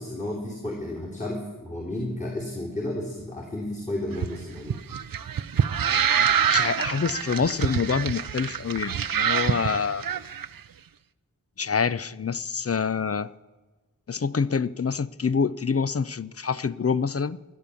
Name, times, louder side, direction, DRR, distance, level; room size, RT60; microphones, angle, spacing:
voice 1, 0.0-4.8, left 1 dB, 20° left, 3.2 m, -32 dB
sound 1, 4.1-10.5, right 8 dB, 85° right, 0.6 m, -26 dB
voice 2, 6.5-10.1 11.6-13.3 14.1-17.4, left 5 dB, 45° left, 0.5 m, -26 dB
16.5 x 10.5 x 7.0 m
wide cardioid pair, 55°, 33 cm